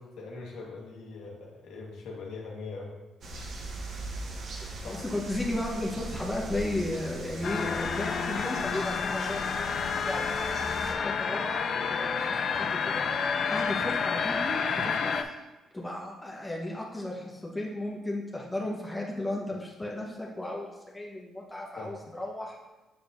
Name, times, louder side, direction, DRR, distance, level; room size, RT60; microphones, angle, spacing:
voice 1, 0.0-2.9 4.7-5.0 21.8-22.0, left 3 dB, 85° left, -1 dB, 1.4 m, -41 dB
sound 1, 3.2-10.9, right 1 dB, 60° right, 1.0 m, -40 dB
voice 2, 4.6-15.3 15.7-22.5, left 1 dB, 15° left, -2 dB, 1.0 m, -35 dB
sound 2, 7.4-15.2, left 6 dB, 55° left, 0.4 m, -29 dB
7.1 x 6.7 x 2.6 m, 1.1 s
cardioid pair, 90°, 0 cm